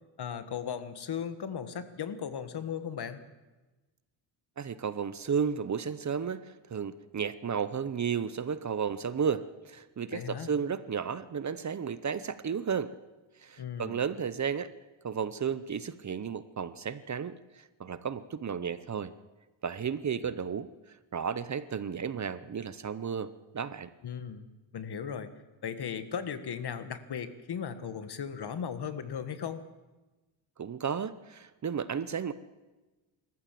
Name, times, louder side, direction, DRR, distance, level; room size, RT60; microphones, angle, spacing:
voice 1, 0.2-3.2 10.1-10.5 13.6-14.0 24.0-24.5 24.7-25.3 25.6-29.6, left 7 dB, 55° left, 10 dB, 1.7 m, -37 dB
voice 2, 4.6-12.9 13.4-14.7 15.0-19.1 19.6-20.7 21.1-23.9 30.6-32.3, right 7 dB, 35° right, 14 dB, 0.8 m, -33 dB
25.5 x 14.0 x 7.6 m, 1.2 s
cardioid pair, 125°, 47 cm